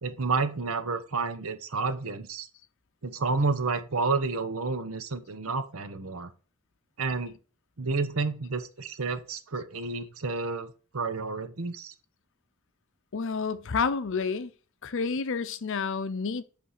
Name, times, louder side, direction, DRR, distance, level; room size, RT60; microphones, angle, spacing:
voice 1, 0.0-2.5 3.0-6.3 7.0-7.4 7.8-11.9, right 4 dB, 75° right, 0.9 m, -30 dB
voice 2, 13.1-14.5 14.8-16.4, left 5 dB, 60° left, 0.6 m, -29 dB
8.3 x 3.4 x 5.7 m
head